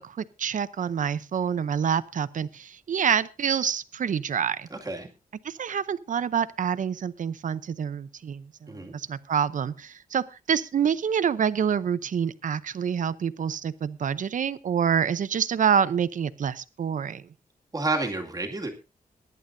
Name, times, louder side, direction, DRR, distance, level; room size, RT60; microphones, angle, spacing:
voice 1, 0.0-4.7 5.4-17.2, right 7 dB, 65° right, 14 dB, 0.7 m, -27 dB
voice 2, 4.7-5.1 8.7-8.9 17.7-18.7, right 2 dB, 25° right, 1 dB, 2.3 m, -30 dB
22.5 x 11.0 x 2.7 m, 0.30 s
wide cardioid pair, 150°, 15 cm